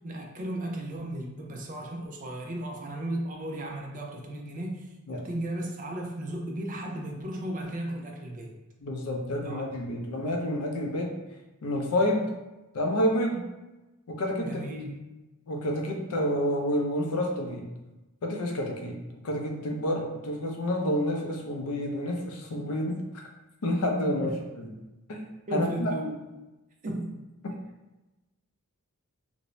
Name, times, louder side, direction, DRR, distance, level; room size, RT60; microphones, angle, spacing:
voice 1, 0.0-8.5 9.4-9.7 14.4-15.1 24.2-24.4 25.5-26.4 26.8-27.2, right 1 dB, 35° right, 1 dB, 0.4 m, -35 dB
voice 2, 8.8-11.2 11.6-12.3 12.7-13.4 14.1-14.6 15.5-17.7 18.2-23.2 23.6-24.7 25.1-25.2 25.5-25.9, left 1 dB, 75° left, 2 dB, 0.5 m, -29 dB
2.5 x 2.1 x 3.0 m, 1.1 s
head